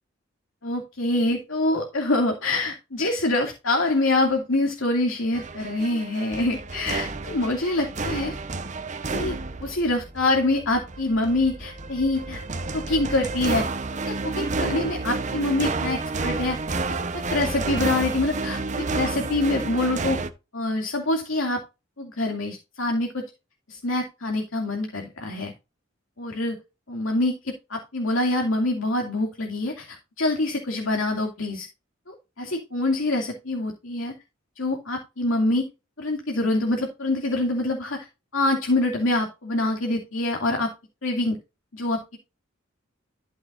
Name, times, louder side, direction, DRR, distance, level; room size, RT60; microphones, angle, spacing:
voice 1, 0.6-8.3 9.1-9.4 9.6-12.4 12.7-13.7 14.0-16.6 17.1-18.6 18.9-20.2 20.5-21.6 22.0-23.2 23.7-25.5 26.2-26.6 26.9-31.7 32.1-34.1 34.6-35.6 36.0-38.1 38.3-40.7 41.0-41.4 41.7-42.2, left 2 dB, 90° left, 2 dB, 2.5 m, -25 dB
sound 1, 5.3-20.3, right 3 dB, 40° right, 0.9 m, -30 dB
12.0 x 7.3 x 2.6 m, 0.27 s
head